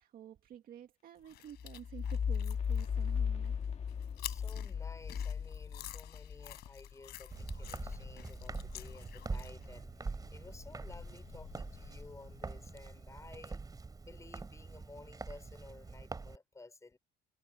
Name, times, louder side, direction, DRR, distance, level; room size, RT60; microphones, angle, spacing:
voice 1, 0.0-3.6, right 10 dB, 60° right, 1.9 m, -51 dB
sound 1, 1.2-9.7, left 14 dB, 70° left, 4.9 m, -50 dB
sound 2, 1.6-9.8 10.2-12.8, left 7 dB, 40° left, 1.6 m, -39 dB
voice 2, 3.2-13.6 14.0-17.0, left 3 dB, 20° left, 5.8 m, -55 dB
Walk footsteps, 7.3-16.4, right 4 dB, 20° right, 3.6 m, -44 dB
cardioid pair, 110°, 17 cm